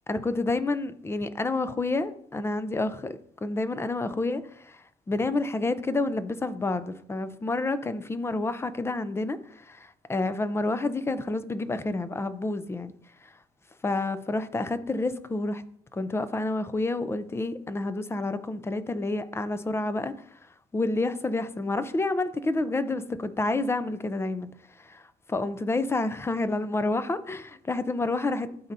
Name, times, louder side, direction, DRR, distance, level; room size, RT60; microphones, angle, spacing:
voice 1, 0.1-12.9 13.2-13.3 13.8-15.6 15.9-20.1 20.7-24.5 24.8-25.0 25.3-28.7, left 2 dB, 15° left, 0.5 m, -29 dB
12.5 x 4.2 x 2.6 m
cardioid pair, 110°, 17 cm